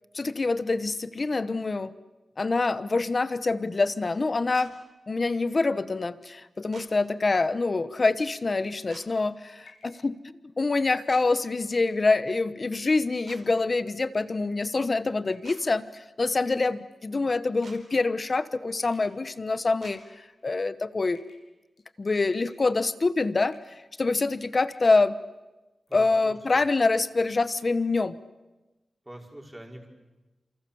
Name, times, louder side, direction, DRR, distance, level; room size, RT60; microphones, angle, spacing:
voice 1, 0.1-1.9 2.4-4.7 5.1-10.1 10.6-20.0 20.4-21.2 22.0-23.6 24.0-25.1 25.9-28.1, left 3 dB, 35° left, 13 dB, 1.1 m, -25 dB
sound 1, 4.5-4.7 6.7-6.9 8.9-9.1 11.1-11.2 13.3-13.4 15.4-15.6 17.6-17.8 19.8-20.0, right 4 dB, 80° right, 4.7 m, -47 dB
sound 2, 8.5-8.9 9.7-10.0 10.8-11.0 11.8-12.2 13.0-13.4 14.1-14.6 15.3-15.6 16.5-17.0 17.6-18.0 18.8-19.4 19.9-20.6 21.1-21.5 21.8-22.0 22.3-22.9 23.5-23.8 24.1-24.4 24.7-25.0 25.4-25.5 25.9-26.2, left 4 dB, 80° left, 7.6 m, -58 dB
voice 2, 25.9-26.6 29.0-29.9, right 1 dB, 10° right, 1 dB, 4.9 m, -44 dB
30.0 x 27.5 x 7.2 m, 1.1 s
wide cardioid pair, 145°, 0 cm